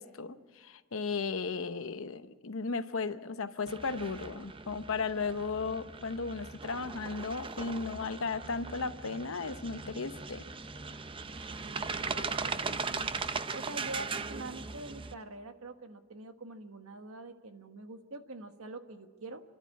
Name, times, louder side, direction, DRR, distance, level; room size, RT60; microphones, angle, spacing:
voice 1, 0.0-10.4, left 4 dB, 70° left, 11 dB, 0.8 m, -35 dB
sound 1, 3.7-15.1, right 4 dB, 25° right, 0.5 m, -39 dB
voice 2, 11.6-13.1 13.5-19.4, right 2 dB, 80° right, 7 dB, 1.4 m, -45 dB
29.0 x 12.5 x 8.4 m, 1.5 s
head